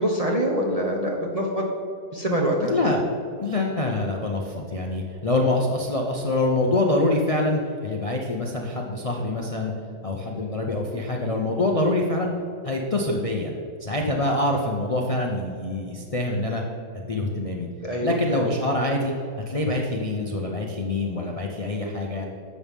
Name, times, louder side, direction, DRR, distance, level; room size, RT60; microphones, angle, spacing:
voice 1, 0.0-1.7 2.1-2.8 17.8-18.4, equal, 30° right, -1 dB, 0.7 m, -25 dB
voice 2, 2.6-3.0 3.4-9.7 10.0-12.3 12.6-13.5 13.8-16.6 16.9-17.7 18.0-19.1 19.5-22.3, left 2 dB, 35° left, 0 dB, 0.5 m, -25 dB
10.5 x 7.3 x 3.6 m, 2.6 s
omnidirectional pair, 1.6 m